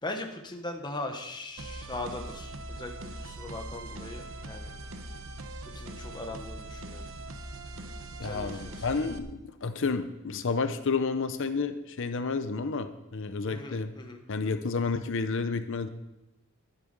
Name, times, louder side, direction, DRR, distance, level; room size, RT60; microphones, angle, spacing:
voice 1, 0.0-4.7 5.7-7.0 8.2-8.8 13.5-14.2, left 2 dB, 20° left, 3 dB, 1.1 m, -39 dB
sound 1, 1.6-9.2, right 1 dB, 65° right, 1.0 m, -41 dB
voice 2, 8.2-13.9 14.3-15.9, left 4 dB, 60° left, 10 dB, 0.7 m, -30 dB
12.0 x 11.0 x 5.3 m, 0.98 s
head